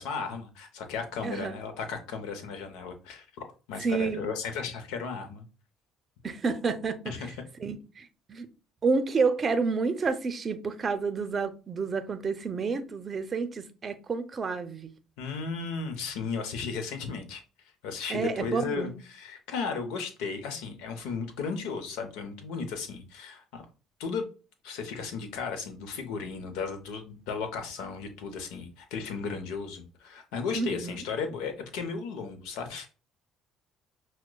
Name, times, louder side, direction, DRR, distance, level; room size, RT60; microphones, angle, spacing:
voice 1, 0.0-5.4 7.1-7.3 15.2-17.4 17.8-23.6 24.0-24.2 24.6-32.9, left 5 dB, 85° left, 0.7 m, -35 dB
voice 2, 1.2-1.6 3.8-4.3 6.2-7.1 7.6-8.5 8.8-14.9 18.1-18.9 30.5-31.0, right 4 dB, 40° right, 0.5 m, -29 dB
5.8 x 2.1 x 2.2 m
supercardioid pair, 80°, 0 cm